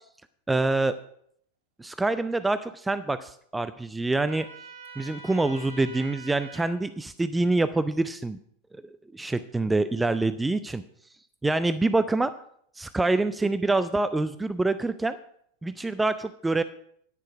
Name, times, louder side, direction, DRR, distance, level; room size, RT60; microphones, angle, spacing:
voice 1, 0.5-0.9 1.8-4.5 5.0-8.4 9.1-10.8 11.4-12.3 12.8-15.2 15.6-16.6, right 2 dB, 10° right, 13 dB, 0.4 m, -26 dB
Trumpet, 4.3-6.8, right 3 dB, 60° right, 2.8 m, -44 dB
10.5 x 9.9 x 5.0 m, 0.67 s
figure-of-eight pair, 90°, 0 cm